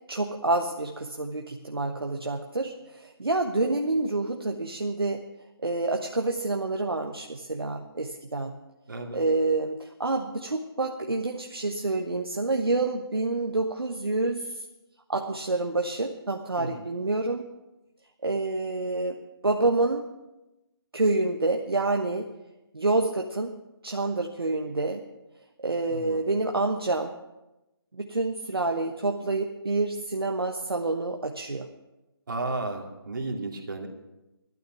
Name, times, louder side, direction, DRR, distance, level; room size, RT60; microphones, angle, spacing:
voice 1, 0.1-5.2 5.6-8.6 9.1-14.6 15.1-17.5 18.2-19.2 19.4-20.0 20.9-22.2 22.7-23.5 23.8-25.0 25.6-27.1 27.9-31.7, right 2 dB, 70° right, 3 dB, 1.2 m, -28 dB
voice 2, 8.9-9.2 16.6-16.8 25.9-26.2 32.3-33.9, right 2 dB, 55° right, 2 dB, 2.6 m, -33 dB
15.5 x 12.5 x 5.9 m, 1.0 s
figure-of-eight pair, 150°, 13 cm